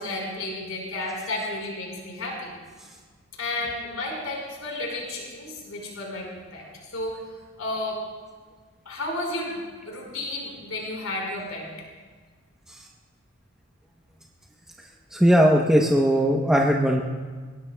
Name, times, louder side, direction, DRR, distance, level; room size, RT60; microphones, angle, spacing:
voice 1, 0.0-2.5 3.4-8.0 8.8-11.7, left 2 dB, 90° left, -1 dB, 4.5 m, -32 dB
voice 2, 15.1-17.0, equal, 5° right, -2 dB, 0.8 m, -19 dB
21.5 x 18.0 x 2.3 m, 1.5 s
head